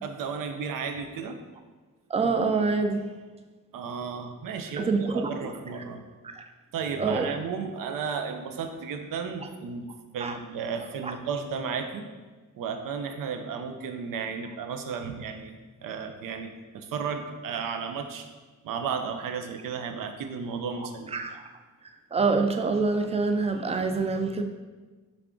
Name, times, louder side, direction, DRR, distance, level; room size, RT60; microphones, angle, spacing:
voice 1, 0.0-1.4 3.7-6.0 6.7-9.9 10.1-12.0 12.6-15.5 15.8-18.3 18.6-21.1, right 6 dB, 85° right, 6 dB, 0.5 m, -33 dB
voice 2, 2.1-3.1 4.8-5.5 6.2-6.4 7.0-7.3 10.2-10.4 11.0-11.1 21.1-21.4 22.1-24.4, right 4 dB, 20° right, 6 dB, 0.3 m, -26 dB
3.6 x 3.4 x 3.6 m, 1.3 s
cardioid pair, 90°, 32 cm